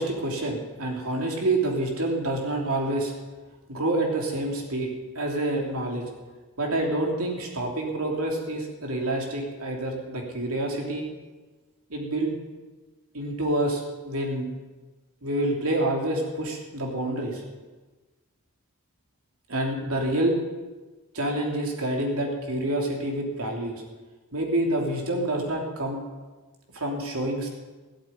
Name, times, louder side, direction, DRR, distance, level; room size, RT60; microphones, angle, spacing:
voice 1, 0.0-3.1 3.7-4.9 5.1-6.0 6.6-11.1 11.9-12.3 13.1-14.5 15.2-17.4 19.5-20.3 21.1-23.8 24.3-26.0 26.7-27.5, right 1 dB, 80° right, 0 dB, 3.1 m, -27 dB
17.0 x 8.4 x 9.2 m, 1.3 s
head